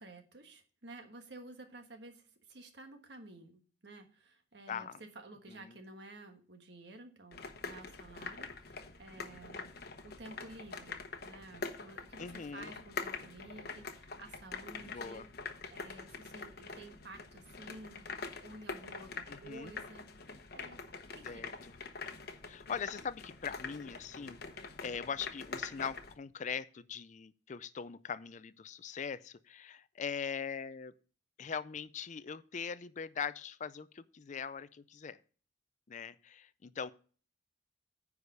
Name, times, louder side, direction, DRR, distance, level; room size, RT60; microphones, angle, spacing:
voice 1, 0.0-9.7 10.0-15.3 15.7-18.1 18.4-20.8 21.1-21.5, right 2 dB, 65° right, 6 dB, 1.4 m, -52 dB
voice 2, 4.7-5.0 5.5-5.7 12.2-12.7 14.8-15.3 19.3-19.7 21.2-21.7 22.5-24.4 24.8-30.9 31.4-35.2 35.9-36.9, left 6 dB, 40° left, 16 dB, 0.4 m, -41 dB
sound 1, 7.3-26.1, left 4 dB, 60° left, 1.0 m, -45 dB
9.8 x 4.9 x 6.5 m, 0.41 s
head